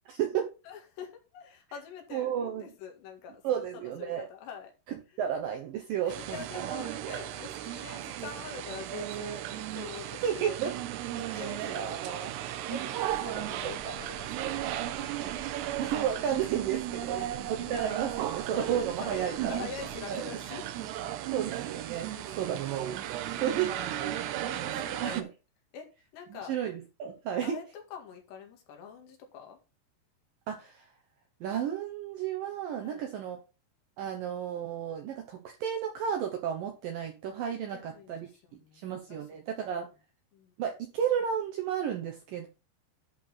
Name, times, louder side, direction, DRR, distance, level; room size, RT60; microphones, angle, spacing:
voice 1, 0.6-4.7 6.0-10.6 11.2-11.9 12.6-14.6 15.0-15.3 16.7-17.4 18.5-20.7 22.1-22.3 23.1-25.3 25.7-25.9 26.1-26.5 27.4-29.6 32.8-33.0 37.7-39.2 40.3-40.5, left 6 dB, 85° left, 4.3 m, -45 dB
voice 2, 2.1-2.7 3.4-4.2 5.2-6.4 10.2-10.7 11.3-12.3 13.6-13.9 15.8-19.6 20.1-20.2 21.3-22.1 22.4-23.1 23.4-23.7 25.0-25.3 26.5-27.6 30.5-30.9 31.4-33.4 34.0-38.3 38.7-39.9 40.6-42.5, right 9 dB, 65° right, 2.5 m, -32 dB
sound 1, 6.1-25.2, right 13 dB, 85° right, 2.9 m, -35 dB
sound 2, 13.1-20.0, equal, 30° left, 2.5 m, -51 dB
11.0 x 4.7 x 5.6 m
omnidirectional pair, 4.8 m